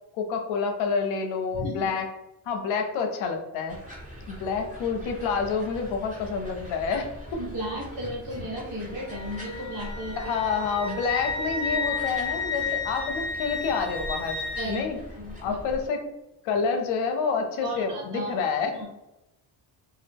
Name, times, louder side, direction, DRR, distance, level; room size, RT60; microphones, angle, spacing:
voice 1, 0.1-2.1 2.5-3.8 4.3-7.1 10.2-14.4 14.7-15.0 15.4-16.1 16.4-18.8, left 5 dB, 80° left, 5 dB, 0.6 m, -28 dB
voice 2, 1.5-1.9 7.4-10.2 14.5-14.8 15.2-15.6 17.6-18.4 18.7-18.8, equal, 40° right, -8 dB, 1.1 m, -34 dB
sound 1, 3.7-15.9, equal, 15° right, 1.3 m, -42 dB
sound 2, 8.9-13.3, equal, 10° left, 0.7 m, -43 dB
Wind instrument woodwind instrument, 9.1-14.9, left 4 dB, 60° left, 0.9 m, -33 dB
2.3 x 2.0 x 3.3 m, 0.93 s
cardioid pair, 100°, 47 cm